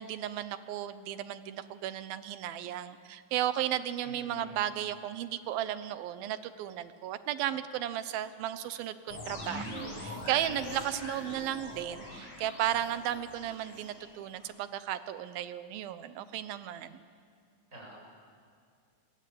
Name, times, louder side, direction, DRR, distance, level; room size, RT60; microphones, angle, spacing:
voice 1, 0.0-17.0, right 11 dB, 85° right, 12 dB, 2.8 m, -35 dB
voice 2, 4.0-4.6 17.7-18.0, equal, 20° right, -3 dB, 7.6 m, -46 dB
sound 1, 9.1-14.5, left 1 dB, 55° left, 6.1 m, -43 dB
26.0 x 22.5 x 8.5 m, 2.1 s
omnidirectional pair, 4.1 m